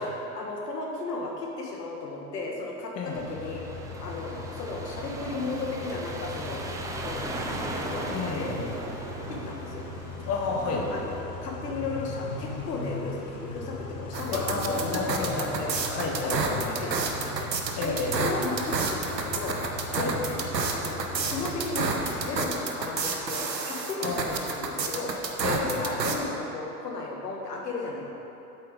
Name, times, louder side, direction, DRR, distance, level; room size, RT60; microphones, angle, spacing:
voice 1, 0.0-3.6 4.0-6.6 7.0-8.5 9.3-9.8 10.9-11.2 11.4-15.1 15.4-15.8 16.2-17.5 17.8-19.6 19.9-20.4 20.7-21.0 21.3-25.1 25.5-28.1, left 3 dB, 75° left, -1 dB, 1.6 m, -35 dB
sound 1, 3.1-11.2, right 2 dB, 5° right, 0.4 m, -38 dB
Car / Idling / Accelerating revving vroom, 3.2-22.3, left 2 dB, 45° left, 1.5 m, -39 dB
voice 2, 8.1-8.7 10.2-10.9 14.3-16.6 17.8-18.2 19.9-20.2 24.0-24.5 25.4-25.9, left 3 dB, 30° left, -1 dB, 1.5 m, -31 dB
sound 2, 14.1-26.2, right 4 dB, 85° right, 1.0 m, -29 dB
8.4 x 7.7 x 5.0 m, 3.0 s
figure-of-eight pair, 90°, 49 cm